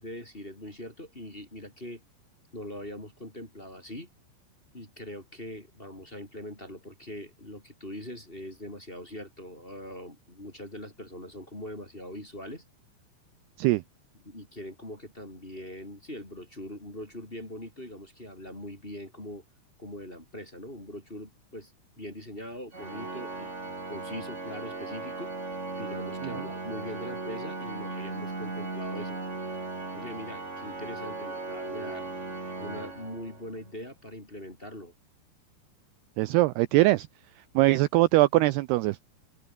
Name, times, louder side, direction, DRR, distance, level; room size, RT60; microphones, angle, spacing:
voice 1, 0.0-2.0 2.5-4.1 4.7-12.6 14.2-19.4 19.8-29.2 29.9-32.1 32.6-34.9, left 1 dB, 15° left, 3.6 m, -42 dB
Organ, 22.7-33.7, right 3 dB, 20° right, 2.8 m, -37 dB
voice 2, 36.2-37.1 37.6-39.0, right 19 dB, 80° right, 2.4 m, -22 dB
omnidirectional pair, 5.2 m